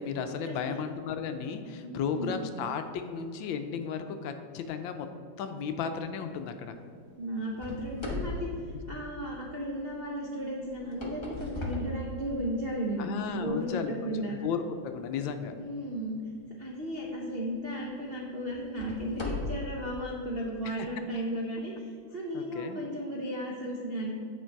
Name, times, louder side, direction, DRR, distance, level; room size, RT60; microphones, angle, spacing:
voice 1, 0.0-5.1 5.4-6.7 13.0-15.5 20.6-20.9 22.3-22.8, left 6 dB, 75° left, 7 dB, 1.3 m, -34 dB
voice 2, 1.8-2.4 7.2-14.3 15.6-16.2 16.6-24.1, equal, 60° right, -2 dB, 0.6 m, -35 dB
sound 1, 7.6-9.6 10.7-12.7 13.3-13.4 14.1-14.2 16.8-17.0 17.6-17.7 18.5-19.8, left 2 dB, 25° left, 0.6 m, -37 dB
8.8 x 5.2 x 4.5 m, 2.3 s
omnidirectional pair, 2.3 m